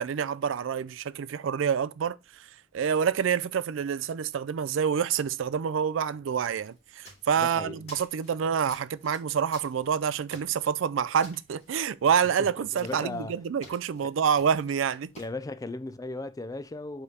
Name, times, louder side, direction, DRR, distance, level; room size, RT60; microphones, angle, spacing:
voice 1, 0.0-2.5 2.7-15.1, right 7 dB, 70° right, 0.4 m, -27 dB
sound 1, 6.4-15.3, left 2 dB, 35° left, 3.0 m, -53 dB
voice 2, 7.4-7.9 12.4-13.4 14.0-14.1 15.2-17.0, left 2 dB, 20° left, 0.3 m, -37 dB
4.9 x 4.9 x 4.1 m
head